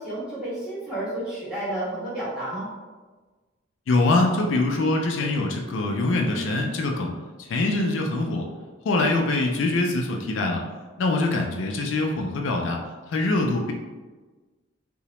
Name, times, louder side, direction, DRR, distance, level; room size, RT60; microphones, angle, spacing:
voice 1, 0.0-2.7, right 1 dB, 5° right, -10 dB, 1.2 m, -31 dB
voice 2, 3.9-7.1 7.4-8.5 8.8-10.6 11.0-12.8 13.1-13.7, left 2 dB, 75° left, 2 dB, 0.3 m, -23 dB
2.8 x 2.0 x 3.0 m, 1.3 s
head